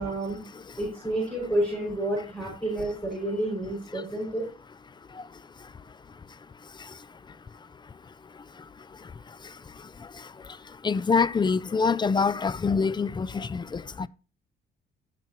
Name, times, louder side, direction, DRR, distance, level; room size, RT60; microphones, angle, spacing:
voice 1, 0.0-0.4 0.7-4.4, right 1 dB, ahead, 6.1 m, -29 dB
voice 2, 4.9-14.1, left 5 dB, 20° left, 0.4 m, -30 dB
16.0 x 6.0 x 3.0 m
cardioid pair, 90°, 20 cm